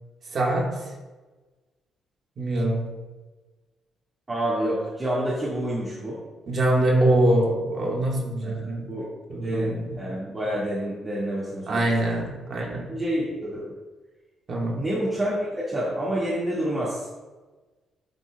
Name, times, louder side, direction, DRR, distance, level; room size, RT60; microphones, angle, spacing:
voice 1, 0.3-0.9 2.4-2.9 6.5-8.9 9.3-10.0 11.7-12.9 14.5-14.8, right 1 dB, 50° right, -2 dB, 1.6 m, -24 dB
voice 2, 4.3-6.2 8.4-9.1 9.4-11.9 12.9-13.7 14.8-17.0, right 1 dB, 25° right, -8 dB, 1.9 m, -28 dB
10.5 x 4.3 x 2.3 m, 1.2 s
cardioid pair, 90°, 0 cm